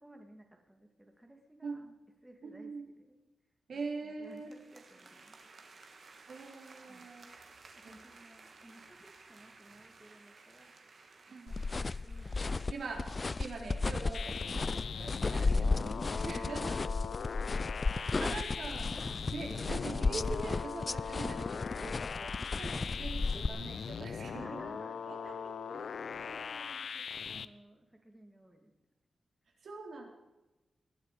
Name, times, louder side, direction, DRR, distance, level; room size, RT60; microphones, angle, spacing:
voice 1, 0.0-1.8 2.2-2.7 3.0-3.1 4.0-5.5 6.9-7.1 7.9-10.7 11.5-12.7 14.7-14.9 15.7-16.0 16.7-16.8 17.3-18.6 24.2-25.4 25.7-28.7, right 1 dB, 10° right, 3 dB, 2.4 m, -57 dB
voice 2, 1.6-1.9 2.4-2.9 3.7-4.5 6.3-7.3 7.8-8.0 11.3-11.7 12.5-16.9 17.9-24.8 25.1-25.5 29.6-30.1, right 3 dB, 70° right, 0 dB, 4.1 m, -43 dB
sound 1, 4.2-14.6, right 3 dB, 55° right, 2.6 m, -57 dB
sound 2, 11.5-23.5, left 3 dB, 35° left, 0.4 m, -34 dB
sound 3, 14.1-27.5, left 6 dB, 75° left, 0.7 m, -41 dB
20.0 x 11.5 x 5.1 m, 1.0 s
wide cardioid pair, 100°, 0 cm